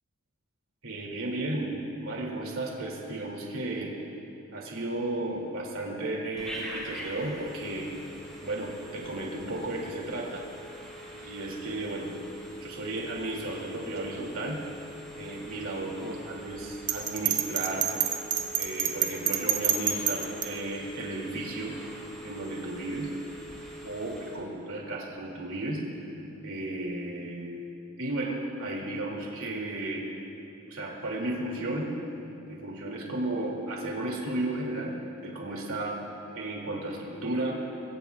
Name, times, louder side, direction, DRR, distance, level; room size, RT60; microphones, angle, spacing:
voice 1, 0.8-3.9 4.5-7.9 8.4-10.4 11.1-12.1 12.6-14.6 15.1-17.9 18.5-21.7 22.2-23.1 23.8-25.8 26.4-27.6 28.0-30.1 30.7-31.9 32.5-36.0 36.3-37.6, right 2 dB, 70° right, -2 dB, 2.5 m, -34 dB
Telephone, 6.4-24.5, right 1 dB, 5° left, 4.1 m, -44 dB
Bell, 16.9-20.5, right 9 dB, 35° right, 1.0 m, -27 dB
26.5 x 22.5 x 2.4 m, 2.9 s
head